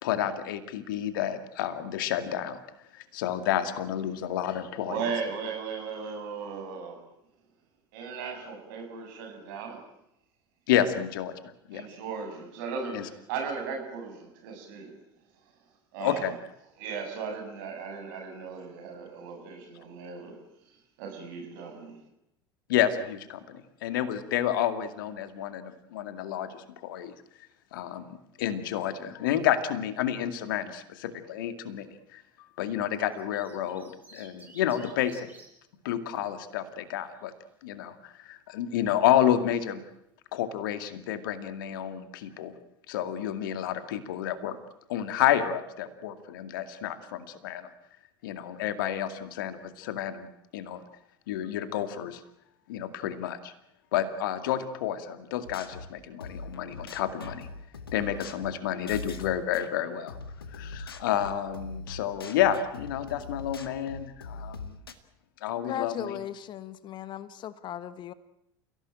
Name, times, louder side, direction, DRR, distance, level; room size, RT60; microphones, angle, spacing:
voice 1, 0.0-2.6 2.9-5.0 10.7-11.3 11.7-11.9 12.9-13.1 16.0-16.3 22.7-27.1 27.7-35.3 35.8-37.3 37.6-39.8 40.3-42.5 42.9-44.6 44.9-47.7 48.2-50.3 50.5-50.8 51.3-52.2 52.7-53.5 53.9-57.5 57.9-60.2 60.5-64.7 65.4-66.2, left 10 dB, 65° left, 2.2 m, -30 dB
voice 2, 4.8-7.0 7.9-9.8 11.7-14.9 15.9-16.3 16.8-20.4 21.0-22.0, right 5 dB, 60° right, 7.3 m, -37 dB
sound 1, 32.9-35.5 36.7-37.2, right 2 dB, 15° right, 6.5 m, -53 dB
sound 2, 55.5-59.7 60.1-64.9, left 3 dB, 80° left, 1.9 m, -42 dB
voice 3, 65.5-68.1, left 10 dB, 40° left, 1.3 m, -37 dB
29.5 x 17.0 x 9.0 m
figure-of-eight pair, 70°, 12 cm